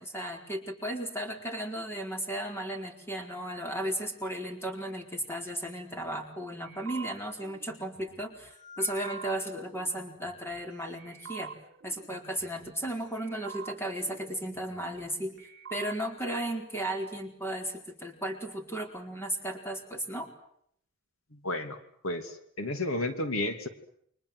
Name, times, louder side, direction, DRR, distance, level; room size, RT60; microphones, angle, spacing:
voice 1, 0.0-8.5 8.8-11.5 11.8-15.3 15.7-20.3, right 1 dB, 10° left, 3 dB, 4.6 m, -35 dB
sound 1, 6.6-10.6 11.0-12.9 13.2-15.1 15.4-16.0, right 5 dB, 55° right, 2.0 m, -46 dB
voice 2, 21.3-21.8 22.0-23.7, left 1 dB, 80° left, 8 dB, 2.7 m, -32 dB
29.5 x 25.0 x 8.1 m, 0.69 s
head